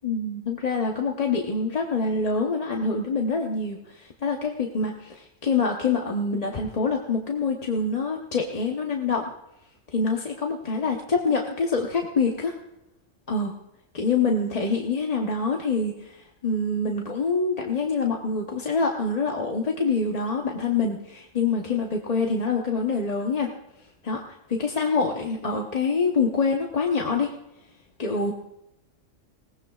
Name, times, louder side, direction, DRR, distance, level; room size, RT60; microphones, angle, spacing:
voice 1, 0.0-9.3 9.9-12.6 13.3-13.5 13.9-23.5 24.0-24.2 24.5-27.3 28.0-28.3, left 4 dB, 35° left, 0 dB, 1.0 m, -25 dB
21.0 x 17.5 x 2.4 m, 0.89 s
omnidirectional pair, 1.3 m